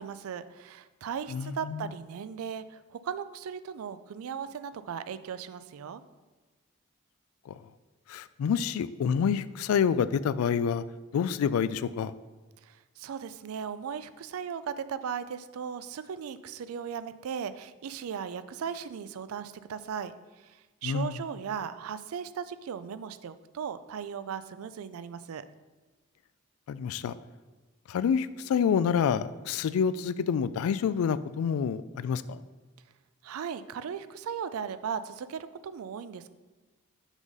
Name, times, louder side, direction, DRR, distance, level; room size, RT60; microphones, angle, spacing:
voice 1, 0.0-6.0 12.7-20.1 20.8-25.4 33.2-36.3, right 7 dB, 85° right, 14 dB, 0.4 m, -37 dB
voice 2, 1.3-1.8 8.1-10.8 11.1-12.1 20.8-21.1 26.7-27.1 27.9-32.4, left 7 dB, 85° left, 16 dB, 0.3 m, -27 dB
6.0 x 3.9 x 5.3 m, 1.3 s
head